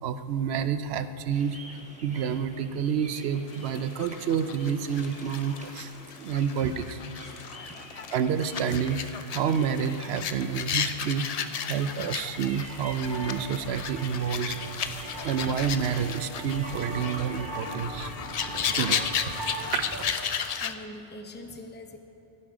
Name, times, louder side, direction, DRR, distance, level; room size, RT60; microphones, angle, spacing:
voice 1, 0.0-5.9 6.2-7.0 8.1-9.0 9.3-11.2 11.6-14.5 15.2-18.2 18.7-19.0 19.6-20.0, right 7 dB, 75° right, 12 dB, 0.8 m, -29 dB
sound 1, 1.3-19.9, equal, 5° right, 1.1 m, -47 dB
sound 2, 3.5-20.7, left 7 dB, 60° left, 0.4 m, -34 dB
sound 3, 12.7-20.2, right 1 dB, 45° right, 1.4 m, -39 dB
voice 2, 20.6-22.0, left 1 dB, 10° left, 5 dB, 0.6 m, -44 dB
16.0 x 7.7 x 4.9 m, 2.8 s
omnidirectional pair, 1.1 m